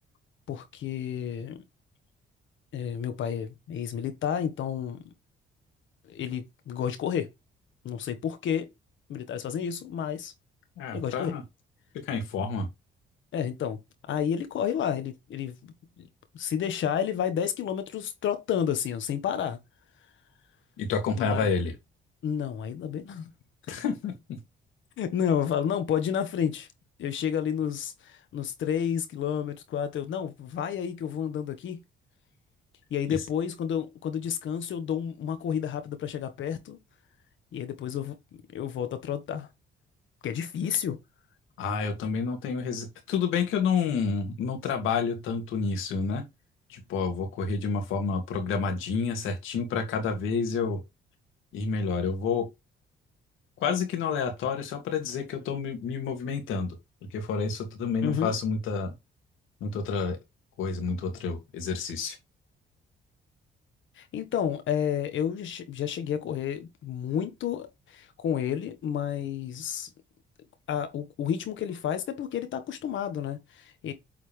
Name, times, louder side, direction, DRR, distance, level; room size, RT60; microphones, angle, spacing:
voice 1, 0.5-1.6 2.7-5.1 6.0-7.3 7.8-8.7 9.1-10.3 10.9-11.3 13.3-13.8 14.1-16.1 16.3-19.6 21.1-21.5 22.2-23.3 25.0-26.7 27.0-31.8 32.9-36.8 37.5-39.5 40.2-41.0 58.0-58.4 64.0-69.9 70.7-73.9, left 8 dB, 75° left, 1.6 m, -31 dB
voice 2, 10.8-11.4 12.0-12.7 20.8-21.7 23.7-24.4 41.6-46.2 46.7-50.8 51.5-52.5 53.6-56.7 57.1-58.9 59.6-60.2 60.6-62.2, left 5 dB, 90° left, 2.6 m, -29 dB
8.5 x 4.0 x 3.5 m
cardioid pair, 90°, 20 cm